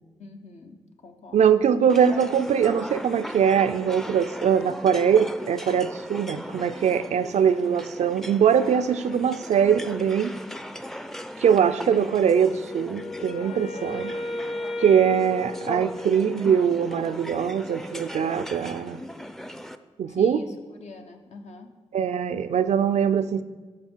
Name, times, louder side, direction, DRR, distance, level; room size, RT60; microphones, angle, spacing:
voice 1, 0.2-1.5 7.0-7.3 20.1-21.8, left 3 dB, 80° left, 4 dB, 0.8 m, -44 dB
voice 2, 1.3-10.3 11.4-14.1 14.8-19.0 20.0-20.4 21.9-23.4, right 8 dB, 85° right, 11 dB, 0.4 m, -22 dB
sound 1, 1.9-19.8, equal, 5° left, 0.4 m, -38 dB
Wind instrument woodwind instrument, 12.7-16.6, left 2 dB, 55° left, 0.9 m, -35 dB
12.5 x 4.7 x 4.5 m, 1.4 s
cardioid pair, 75°, 11 cm